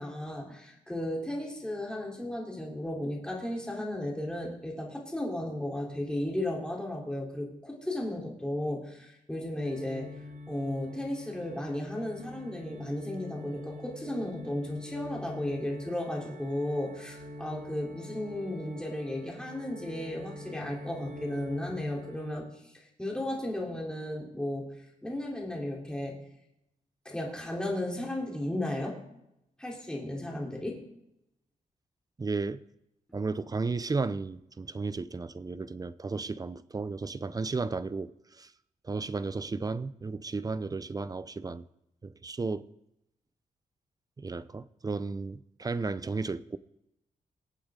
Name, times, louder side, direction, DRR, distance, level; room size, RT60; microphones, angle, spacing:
voice 1, 0.0-10.1 10.5-22.5 22.7-24.7 25.0-26.2 27.1-29.0 29.6-30.8, left 1 dB, 5° left, -2 dB, 3.7 m, -34 dB
sound 1, 9.6-22.3, left 1 dB, 70° right, 2.7 m, -45 dB
voice 2, 32.2-32.6 33.1-38.5 38.8-41.6 42.0-42.7 44.2-46.6, right 4 dB, 25° right, 16 dB, 0.6 m, -34 dB
23.5 x 8.5 x 3.8 m, 0.83 s
cardioid pair, 100°, 14 cm